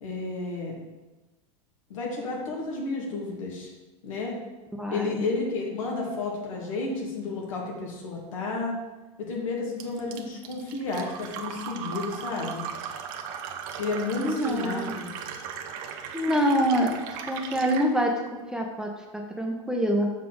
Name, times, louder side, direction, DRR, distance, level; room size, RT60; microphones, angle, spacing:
voice 1, 0.0-0.8 1.9-3.7 4.0-4.3 4.9-8.8 9.2-12.7 13.8-15.1, left 3 dB, 75° left, -2 dB, 1.9 m, -31 dB
voice 2, 4.8-5.2 14.2-14.9 16.1-20.1, equal, 5° right, 0 dB, 0.9 m, -26 dB
Fill (with liquid), 9.8-17.9, right 7 dB, 55° right, 0.8 m, -37 dB
7.1 x 4.5 x 3.9 m, 1.1 s
hypercardioid pair, 95°, 17 cm